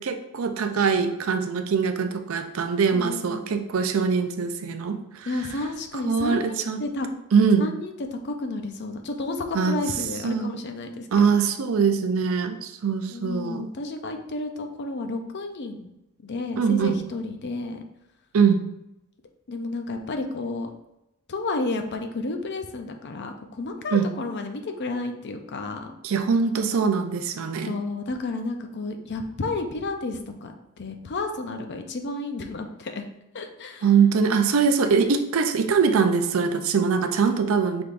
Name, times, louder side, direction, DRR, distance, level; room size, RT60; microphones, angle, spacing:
voice 1, 0.0-5.3 6.1-6.8 7.3-7.7 9.5-9.8 10.2-10.6 11.1-13.7 16.6-17.0 18.3-18.6 23.9-24.1 26.0-27.8 33.8-37.8, right 5 dB, 70° right, 8 dB, 0.4 m, -22 dB
voice 2, 2.9-3.7 5.3-6.5 6.8-7.1 7.6-11.1 13.1-15.9 16.2-17.8 19.5-20.7 21.3-25.9 27.7-30.5 30.8-33.0 33.3-33.9, left 2 dB, 55° left, 5 dB, 0.5 m, -31 dB
6.0 x 3.5 x 2.5 m, 0.86 s
head